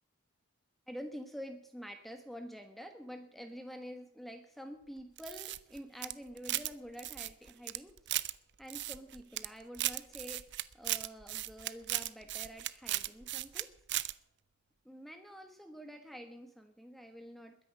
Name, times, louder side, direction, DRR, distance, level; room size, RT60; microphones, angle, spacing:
voice 1, 0.9-8.0 8.6-13.7 14.8-17.6, equal, ahead, 6 dB, 1.3 m, -48 dB
sound 1, 5.2-6.7 7.0-8.3 8.7-9.5 9.7-13.6 13.9-14.1, right 15 dB, 55° right, 0.7 m, -36 dB
21.5 x 10.0 x 6.6 m, 0.73 s
head